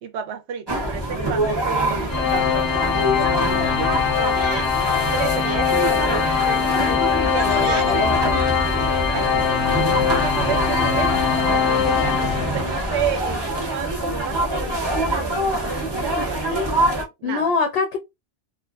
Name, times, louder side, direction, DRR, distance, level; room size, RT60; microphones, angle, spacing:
voice 1, 0.0-4.7 5.1-6.9 7.2-8.2 9.1-11.1 11.5-16.5 17.2-17.5, right 8 dB, 70° right, 0.9 m, -32 dB
sound 1, 0.7-17.0, right 1 dB, 25° right, 0.7 m, -24 dB
Organ, 2.1-12.9, left 8 dB, 90° left, 1.0 m, -22 dB
voice 2, 6.9-8.0 17.2-18.0, left 5 dB, 60° left, 0.7 m, -25 dB
2.4 x 2.4 x 2.3 m
omnidirectional pair, 1.3 m